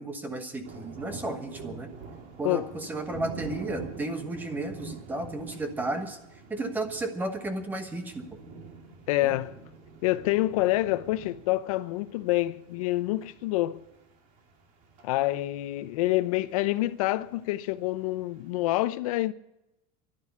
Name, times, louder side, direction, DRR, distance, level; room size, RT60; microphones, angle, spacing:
voice 1, 0.0-1.9 2.4-6.2 6.5-8.4 9.2-9.3, right 2 dB, 10° right, 1.2 m, -33 dB
sound 1, 0.6-18.8, right 4 dB, 45° right, 2.4 m, -46 dB
voice 2, 9.1-9.6 10.0-13.8 15.0-19.3, left 17 dB, 80° left, 0.7 m, -27 dB
12.0 x 11.0 x 8.5 m
cardioid pair, 175°, 18 cm